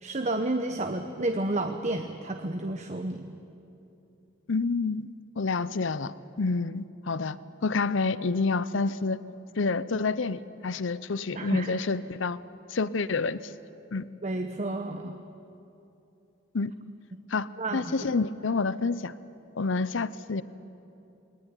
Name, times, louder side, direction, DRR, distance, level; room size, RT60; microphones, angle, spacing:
voice 1, 0.0-3.3 11.3-11.8 14.2-15.2 17.1-17.2 17.6-17.9, right 2 dB, 35° right, 6 dB, 0.9 m, -31 dB
voice 2, 4.5-9.2 9.6-12.4 12.7-13.5 13.9-14.1 16.5-16.7 17.3-19.1 19.6-20.4, left 4 dB, 70° left, 16 dB, 0.7 m, -28 dB
21.5 x 18.5 x 9.8 m, 2.8 s
head